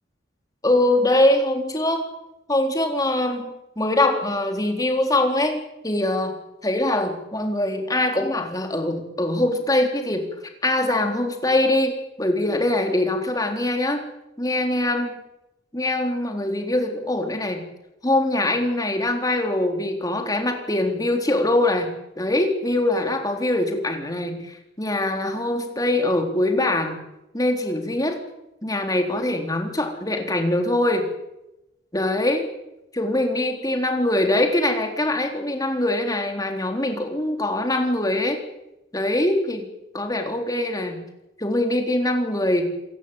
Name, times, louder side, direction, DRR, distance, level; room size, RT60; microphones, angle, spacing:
voice 1, 0.6-2.1 2.5-3.5 3.8-6.3 6.6-10.3 10.6-14.1 14.4-15.1 15.7-17.7 18.0-27.0 27.3-28.2 28.6-31.1 31.9-32.5 32.9-38.4 38.9-39.7 39.9-41.1 41.4-42.7, left 1 dB, 20° left, 4 dB, 3.8 m, -23 dB
27.5 x 17.0 x 9.0 m, 0.90 s
head